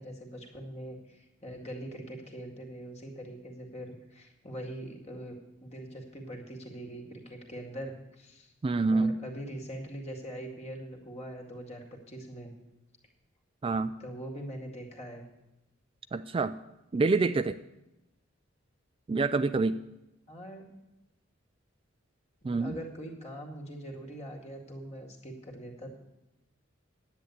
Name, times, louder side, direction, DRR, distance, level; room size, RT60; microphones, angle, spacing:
voice 1, 0.0-8.5 8.9-12.5 14.0-15.3 20.3-20.8 22.4-25.9, right 1 dB, 35° left, 2 dB, 2.2 m, -42 dB
voice 2, 8.6-9.2 13.6-13.9 16.1-16.6 16.9-17.6 19.1-19.8 22.4-22.8, right 3 dB, 25° right, 11 dB, 0.3 m, -27 dB
10.0 x 8.5 x 8.1 m, 0.92 s
head